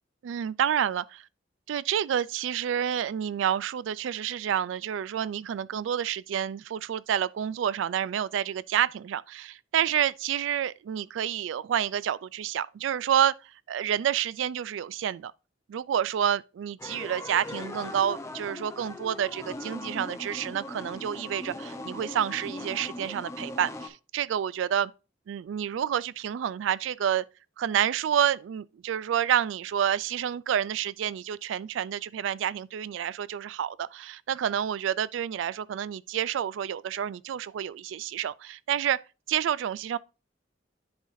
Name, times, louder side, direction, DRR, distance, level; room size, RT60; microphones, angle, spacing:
voice 1, 0.2-1.0 1.7-15.3 15.7-24.9 25.3-27.2 27.6-39.0 39.3-40.0, right 9 dB, 85° right, 0.3 m, -29 dB
sound 1, 16.8-23.9, left 2 dB, 15° left, 0.7 m, -39 dB
10.0 x 3.9 x 2.6 m
head